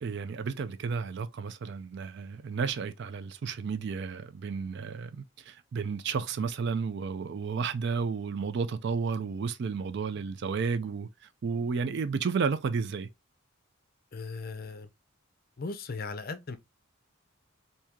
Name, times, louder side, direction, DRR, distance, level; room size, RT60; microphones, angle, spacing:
voice 1, 0.0-11.1 11.4-13.1, right 5 dB, 55° right, 0.3 m, -32 dB
voice 2, 14.1-14.9 15.6-16.6, left 3 dB, 45° left, 0.5 m, -37 dB
3.5 x 2.7 x 2.8 m
head